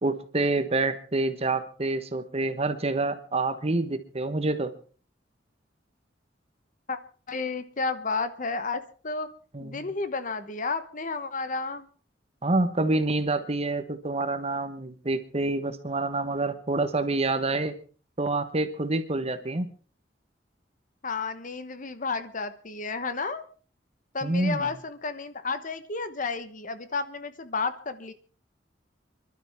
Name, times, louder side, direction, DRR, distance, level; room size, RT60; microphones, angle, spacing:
voice 1, 0.0-4.7 9.5-9.9 12.4-17.7 18.2-19.7 24.2-24.7, right 2 dB, 35° right, 10 dB, 1.3 m, -27 dB
voice 2, 7.3-9.3 9.6-11.9 21.0-23.4 24.1-28.1, left 4 dB, 45° left, 11 dB, 1.1 m, -32 dB
27.5 x 12.0 x 3.6 m, 0.39 s
head